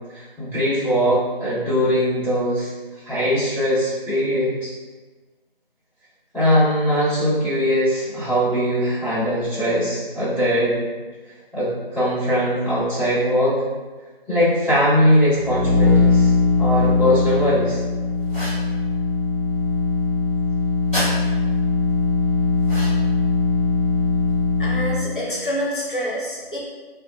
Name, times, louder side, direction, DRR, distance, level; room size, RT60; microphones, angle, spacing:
voice 1, 0.1-2.7 3.0-4.7 6.3-10.7 11.5-13.6 14.3-16.3 16.6-17.8, equal, 5° right, -27 dB, 1.3 m, -20 dB
sound 1, 15.2-25.1, left 4 dB, 35° right, 0.6 m, -20 dB
sound 2, 18.3-18.7 20.9-21.1 22.6-23.1, equal, 10° left, 1.2 m, -28 dB
voice 2, 24.6-26.6, equal, 55° left, -4 dB, 0.7 m, -27 dB
2.9 x 2.2 x 2.4 m, 1.3 s
figure-of-eight pair, 165°, 30 cm